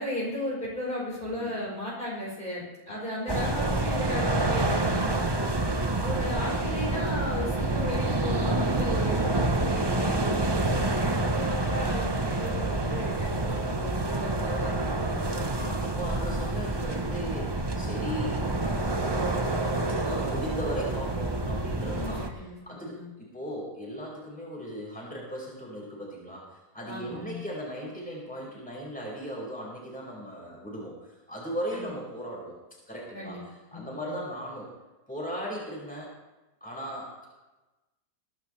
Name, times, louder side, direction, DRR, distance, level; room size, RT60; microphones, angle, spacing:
voice 1, 0.0-5.6 6.0-10.9 11.3-15.9 21.9-23.1 26.9-27.4 31.7-31.9 33.1-33.4 33.7-34.2, left 1 dB, 30° left, -6 dB, 5.1 m, -36 dB
voice 2, 3.3-3.7 15.1-22.3 22.7-32.5 32.9-34.7 35.1-36.1 36.6-37.3, equal, 5° left, -5 dB, 5.2 m, -38 dB
sound 1, 3.3-22.3, right 2 dB, 20° right, 0.7 m, -28 dB
Bass guitar, 10.0-16.3, left 4 dB, 85° left, 4.2 m, -48 dB
23.0 x 12.0 x 3.3 m, 1.1 s
omnidirectional pair, 1.7 m